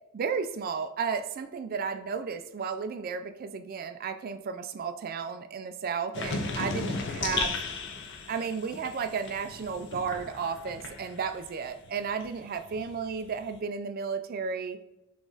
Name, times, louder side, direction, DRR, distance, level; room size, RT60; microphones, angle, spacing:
voice 1, 0.1-7.6 8.3-14.8, right 6 dB, 45° right, 9 dB, 0.3 m, -33 dB
sound 1, 6.1-11.5 11.8-13.5, left 4 dB, 60° left, 0.5 m, -36 dB
5.0 x 2.5 x 3.8 m, 0.91 s
head